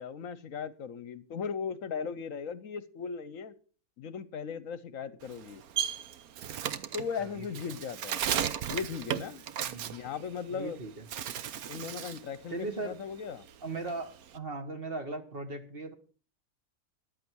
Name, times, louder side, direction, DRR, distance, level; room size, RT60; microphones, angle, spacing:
voice 1, 0.0-3.5 4.0-5.6 6.9-8.2 8.7-9.4 9.9-10.8 11.7-13.5, left 6 dB, 65° left, 16 dB, 1.1 m, -37 dB
Bird, 5.2-10.7 11.0-12.3 12.6-14.4, right 9 dB, 75° right, 1.3 m, -35 dB
voice 2, 7.2-7.7 9.7-10.0 10.5-11.0 12.5-13.0 13.6-15.9, right 3 dB, 40° right, 7 dB, 1.6 m, -38 dB
14.0 x 10.5 x 4.6 m, 0.38 s
omnidirectional pair, 1.6 m